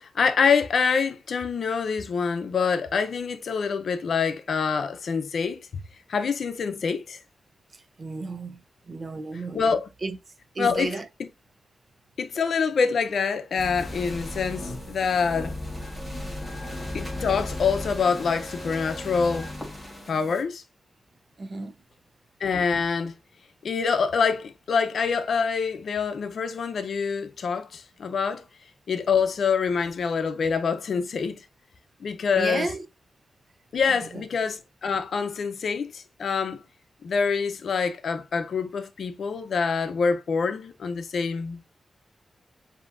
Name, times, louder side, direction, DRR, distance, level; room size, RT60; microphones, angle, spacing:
voice 1, 0.0-5.8 6.1-7.2 9.5-9.9 10.6-10.9 12.2-15.6 16.9-19.5 20.1-20.6 22.4-23.1 23.6-28.4 28.9-31.4 32.0-32.7 33.7-36.6 37.0-41.7, left 5 dB, 65° left, 0.6 m, -26 dB
voice 2, 7.7-10.2 10.5-11.1 14.3-14.4 16.6-16.7 21.4-21.7 32.3-32.9 33.9-34.2, right 3 dB, 35° right, 0.4 m, -34 dB
sound 1, 13.6-20.4, left 1 dB, 5° right, 1.5 m, -35 dB
7.3 x 2.7 x 2.5 m
wide cardioid pair, 150°, 0 cm